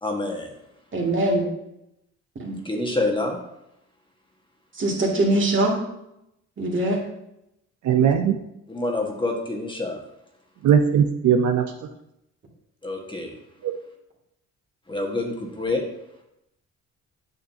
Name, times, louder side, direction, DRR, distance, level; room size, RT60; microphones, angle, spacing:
voice 1, 0.0-0.5 2.6-3.4 8.7-10.0 12.8-13.3 14.9-15.9, left 2 dB, 15° left, 1 dB, 1.5 m, -27 dB
voice 2, 0.9-1.5 2.4-2.6 4.7-5.7 6.6-7.0, right 1 dB, 40° right, -2 dB, 2.2 m, -22 dB
voice 3, 7.8-8.3 10.6-11.6 13.6-13.7, right 8 dB, 70° right, 5 dB, 0.7 m, -19 dB
8.8 x 6.4 x 2.8 m, 0.83 s
cardioid pair, 90°, 30 cm